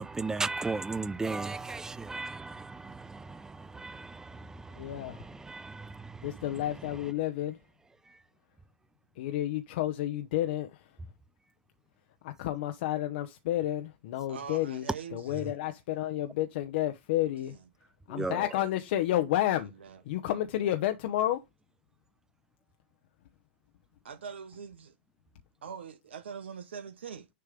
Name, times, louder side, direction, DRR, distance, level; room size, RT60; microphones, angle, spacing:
voice 1, 0.0-6.4 18.1-18.4, right 3 dB, 10° right, 0.4 m, -36 dB
voice 2, 4.8-5.2 6.2-7.6 9.2-10.8 12.2-14.9 15.1-17.6 18.1-19.7 20.1-21.4, left 13 dB, 60° left, 0.8 m, -30 dB
voice 3, 14.3-15.6 17.5-17.6 19.7-20.0 24.0-24.9 25.6-27.3, right 7 dB, 80° right, 0.9 m, -43 dB
6.8 x 3.3 x 5.1 m
hypercardioid pair, 105°, 6 cm